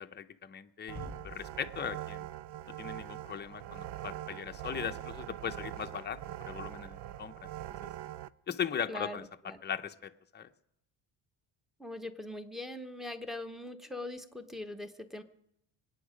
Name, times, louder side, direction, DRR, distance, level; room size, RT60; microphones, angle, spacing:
voice 1, 0.0-2.3 2.7-7.5 7.8-7.9 8.5-10.5, left 7 dB, 25° left, 7 dB, 0.7 m, -39 dB
sound 1, 0.9-3.4, equal, 40° right, 5.6 m, -50 dB
sound 2, 0.9-8.3, right 13 dB, 60° right, 0.6 m, -43 dB
voice 2, 8.9-9.6 11.8-15.2, left 1 dB, ahead, 6 dB, 1.0 m, -41 dB
25.5 x 9.3 x 5.1 m, 0.77 s
cardioid pair, 135°, 46 cm